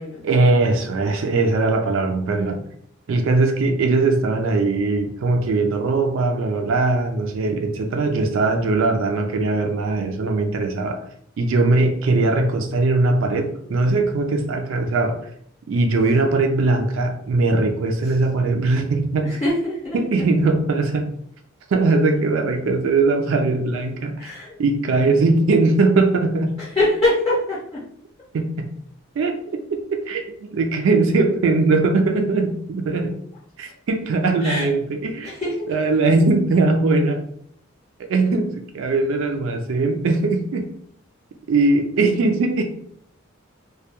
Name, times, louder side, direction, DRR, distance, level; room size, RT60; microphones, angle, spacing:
voice 1, 0.2-2.6 3.1-11.0 11.4-15.2 15.7-19.4 19.9-21.1 21.7-24.3 24.6-26.5 28.3-28.7 29.2-29.4 29.7-33.2 33.6-35.3 35.7-37.2 38.1-40.6 41.5-42.6, right 3 dB, 60° right, 4 dB, 0.3 m, -20 dB
voice 2, 19.2-20.3 24.2-24.6 26.6-27.8 34.4-34.7 35.2-35.7, left 1 dB, 25° left, -7 dB, 0.6 m, -24 dB
2.2 x 2.2 x 2.8 m, 0.65 s
head